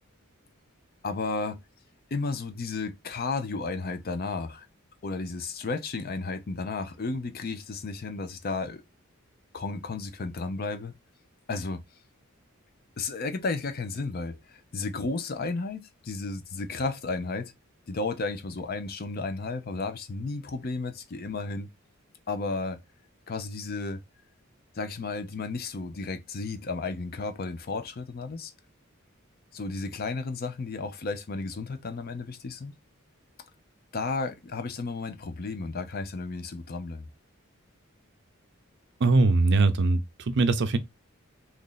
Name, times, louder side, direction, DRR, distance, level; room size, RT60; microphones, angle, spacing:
voice 1, 1.0-1.6 2.1-4.7 5.0-8.8 9.5-10.9 11.5-11.8 13.0-17.5 17.9-21.7 22.3-22.8 23.3-24.0 24.8-28.5 29.5-32.7 33.9-37.1, left 3 dB, 45° left, 0.5 m, -33 dB
voice 2, 39.0-40.8, right 3 dB, 55° right, 0.5 m, -22 dB
3.0 x 2.6 x 3.8 m
head